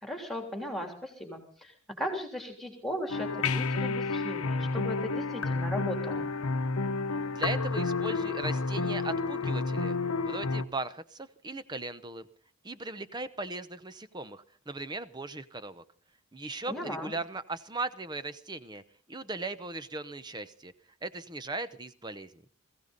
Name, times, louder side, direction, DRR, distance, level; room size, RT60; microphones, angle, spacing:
voice 1, 0.0-6.3 16.7-17.1, left 1 dB, ahead, 3 dB, 3.3 m, -37 dB
sound 1, 3.1-10.6, left 3 dB, 80° left, 0.9 m, -30 dB
voice 2, 7.3-10.0 10.2-12.3 12.6-15.8 16.3-18.8 19.1-20.7 21.0-22.4, right 2 dB, 20° right, 12 dB, 0.8 m, -38 dB
21.0 x 15.5 x 4.0 m, 0.43 s
head